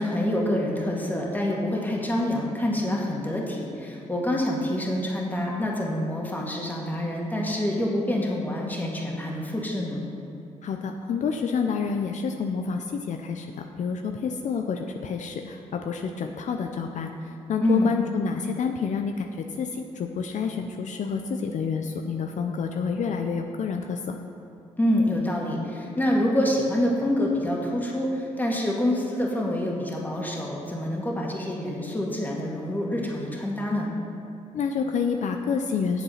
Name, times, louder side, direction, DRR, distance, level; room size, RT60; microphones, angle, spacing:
voice 1, 0.0-10.0 17.6-17.9 24.8-33.9, left 1 dB, 15° left, -2 dB, 1.9 m, -26 dB
voice 2, 10.6-13.5 13.8-17.1 17.5-24.2 34.5-36.0, left 5 dB, 65° left, 4 dB, 0.6 m, -28 dB
8.0 x 7.3 x 5.7 m, 2.7 s
cardioid pair, 75°, 13 cm